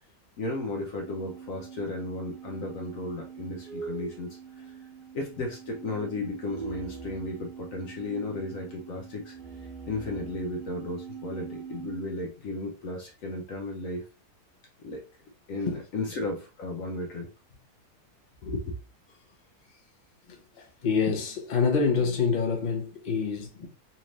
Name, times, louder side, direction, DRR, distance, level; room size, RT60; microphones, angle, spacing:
voice 1, 0.4-4.6 5.1-14.0 14.8-15.0 15.5-17.3 18.4-18.7, left 2 dB, 65° left, 1.0 m, -34 dB
sound 1, 0.9-12.1, right 6 dB, 70° right, 0.5 m, -43 dB
voice 2, 20.3-23.7, left 5 dB, 35° left, 0.8 m, -27 dB
4.1 x 3.0 x 2.5 m
omnidirectional pair, 1.7 m